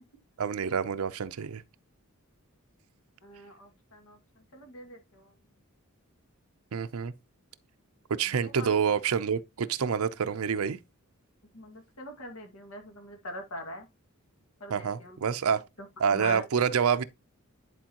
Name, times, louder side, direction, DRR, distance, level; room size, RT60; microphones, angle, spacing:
voice 1, 0.4-1.6 6.7-7.1 8.1-10.8 14.7-15.6 16.0-17.0, right 6 dB, 80° right, 0.5 m, -27 dB
voice 2, 3.2-5.3 8.3-8.7 11.5-13.9 14.6-15.2 15.8-16.4, left 1 dB, 80° left, 2.0 m, -43 dB
10.0 x 4.5 x 2.9 m
head